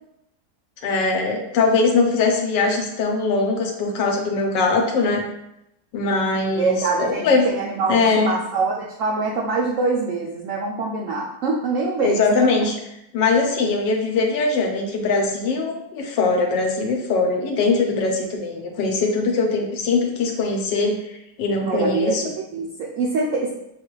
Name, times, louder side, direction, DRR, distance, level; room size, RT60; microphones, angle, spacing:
voice 1, 0.8-5.2 5.9-6.7 7.0-7.4 7.9-8.3 12.0-12.8 13.1-21.0 21.4-22.2, left 3 dB, 80° left, 1 dB, 1.4 m, -21 dB
voice 2, 6.5-12.5 21.6-23.5, right 3 dB, 85° right, -2 dB, 0.7 m, -24 dB
6.2 x 2.3 x 3.0 m, 0.83 s
omnidirectional pair, 1.9 m